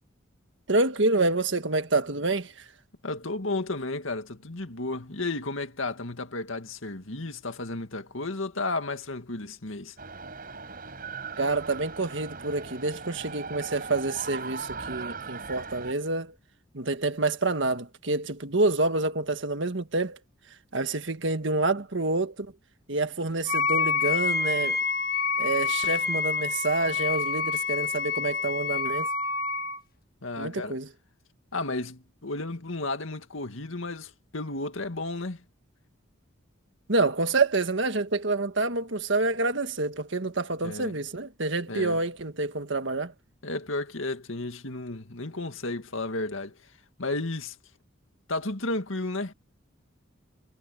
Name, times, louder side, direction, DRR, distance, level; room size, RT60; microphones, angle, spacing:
voice 1, 0.7-2.6 11.4-16.3 16.7-20.2 20.7-22.5 22.9-24.8 25.4-29.1 30.4-30.9 36.9-43.1, right 3 dB, 60° right, 1.6 m, -27 dB
voice 2, 3.0-9.9 30.2-30.8 31.5-35.4 40.6-41.0 41.7-42.0 43.4-46.6 47.0-47.6 48.3-49.3, left 2 dB, 75° left, 2.1 m, -33 dB
sound 1, 10.0-15.9, right 4 dB, 45° right, 6.4 m, -39 dB
Wind instrument woodwind instrument, 23.5-29.8, left 5 dB, 45° left, 1.6 m, -27 dB
head